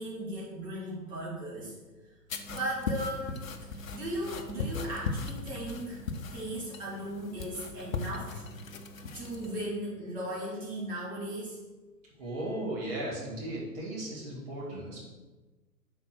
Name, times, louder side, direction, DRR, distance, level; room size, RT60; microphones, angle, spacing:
voice 1, 0.0-1.7 2.5-3.4 3.7-6.0 6.3-8.4 9.1-11.6 12.2-12.3, right 1 dB, 15° right, -8 dB, 2.0 m, -37 dB
sound 1, 2.3-9.7, left 4 dB, 55° left, 0.8 m, -38 dB
voice 2, 12.2-15.0, right 1 dB, 35° right, -5 dB, 2.1 m, -36 dB
5.9 x 4.4 x 6.0 m, 1.2 s
figure-of-eight pair, 120°, 48 cm